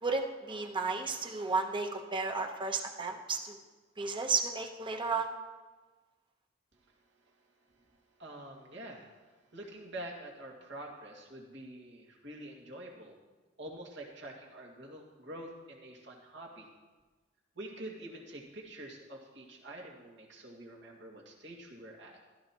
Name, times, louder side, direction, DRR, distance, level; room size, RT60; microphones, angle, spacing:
voice 1, 0.0-3.6 4.0-5.3, right 4 dB, 25° right, 4 dB, 1.0 m, -33 dB
voice 2, 6.9-7.3 7.7-13.2 13.6-16.7 17.6-22.2, right 1 dB, 70° right, -1 dB, 2.1 m, -47 dB
15.5 x 12.5 x 3.0 m, 1.3 s
head